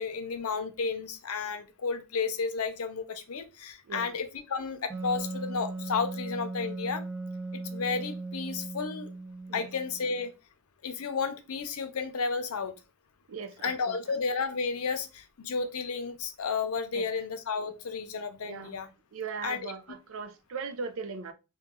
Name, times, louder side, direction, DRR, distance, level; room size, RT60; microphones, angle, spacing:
voice 1, 0.0-7.1 7.5-9.1 9.5-10.3 10.8-12.7 13.6-18.9 19.4-19.7, left 5 dB, 85° left, 0.6 m, -32 dB
Wind instrument woodwind instrument, 4.9-10.3, right 2 dB, 10° right, 0.5 m, -38 dB
voice 2, 13.3-14.0 16.9-17.1 18.4-18.8 19.1-21.3, right 5 dB, 70° right, 0.4 m, -38 dB
3.0 x 2.2 x 3.6 m
head